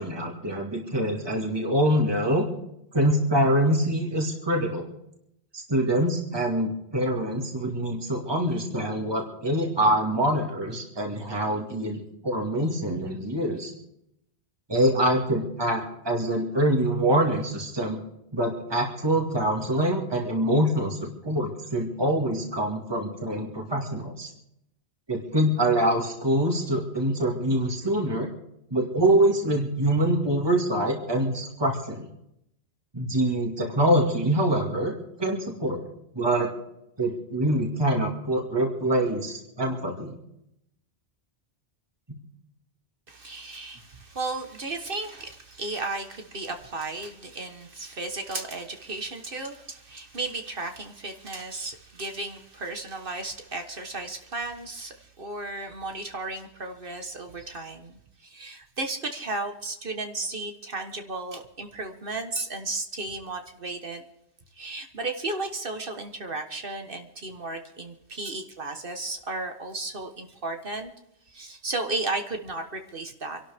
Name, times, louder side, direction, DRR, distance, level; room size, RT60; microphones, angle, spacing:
voice 1, 0.0-2.4 2.9-4.9 5.5-13.7 14.7-18.0 18.3-24.3 25.1-28.3 28.7-32.1 32.9-34.9 35.2-35.8 36.1-36.5 37.0-40.1, right 1 dB, 20° right, 1 dB, 2.2 m, -25 dB
voice 2, 43.1-64.1 64.5-70.9 71.3-73.4, right 2 dB, 55° right, 5 dB, 1.6 m, -34 dB
27.5 x 12.0 x 3.6 m, 0.80 s
omnidirectional pair, 1.1 m